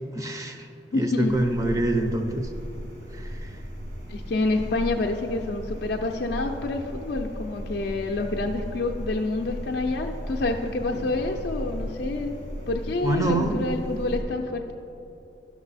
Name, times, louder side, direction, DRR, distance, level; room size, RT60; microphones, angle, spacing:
voice 1, 0.1-0.7 0.9-2.5 3.1-3.5 13.0-13.6, right 2 dB, 20° right, 5 dB, 0.5 m, -26 dB
voice 2, 0.9-1.3 4.1-12.3 12.7-14.7, left 2 dB, 65° left, 1 dB, 0.4 m, -27 dB
sound 1, 1.2-14.2, equal, 65° right, 1.6 m, -36 dB
11.5 x 6.0 x 4.1 m, 2.9 s
head